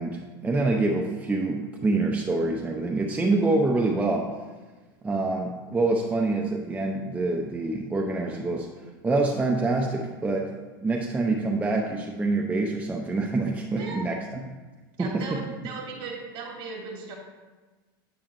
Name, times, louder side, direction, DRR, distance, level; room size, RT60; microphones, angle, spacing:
voice 1, 0.0-4.3 5.0-8.7 9.0-10.5 10.8-14.4 15.0-15.4, right 2 dB, 10° right, 1 dB, 0.6 m, -26 dB
voice 2, 13.7-14.0 15.0-17.2, right 4 dB, 50° right, -1 dB, 2.4 m, -37 dB
8.5 x 7.0 x 2.6 m, 1.2 s
hypercardioid pair, 110°, 12 cm